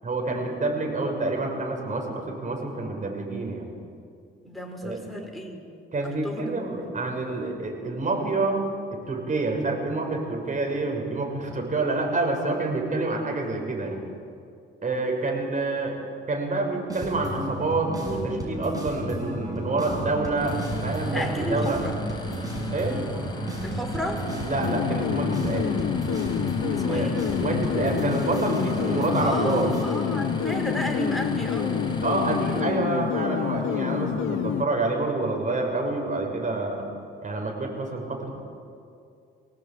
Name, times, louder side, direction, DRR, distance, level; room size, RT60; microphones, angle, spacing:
voice 1, 0.0-3.7 4.8-5.0 5.9-8.6 8.9-14.0 14.8-15.9 16.3-21.8 22.7-23.0 24.4-25.7 26.9-27.1 27.4-29.7 32.0-36.8 37.2-38.3, right 2 dB, 40° right, 1 dB, 6.4 m, -27 dB
voice 2, 4.4-5.6 6.2-6.9 21.1-22.0 23.6-24.3 26.7-27.2 29.2-31.9, equal, ahead, 1 dB, 4.7 m, -32 dB
sound 1, 16.9-29.8, right 1 dB, 15° right, 7.0 m, -34 dB
sound 2, 20.4-32.6, left 1 dB, 20° left, 5.0 m, -35 dB
sound 3, 24.6-34.7, left 8 dB, 80° left, 1.5 m, -28 dB
24.5 x 18.0 x 8.9 m, 2.4 s
cardioid pair, 90°, 20 cm